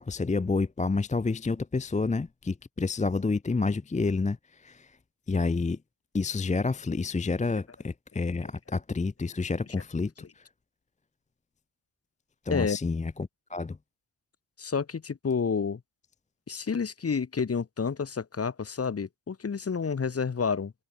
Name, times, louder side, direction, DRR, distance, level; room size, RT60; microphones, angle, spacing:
voice 1, 0.0-4.9 5.3-5.8 6.1-10.4 12.5-13.8, left 3 dB, 15° left, 0.6 m, -29 dB
voice 2, 14.6-15.8 16.5-20.7, left 5 dB, 35° left, 1.1 m, -29 dB
wide cardioid pair, 120°, 43 cm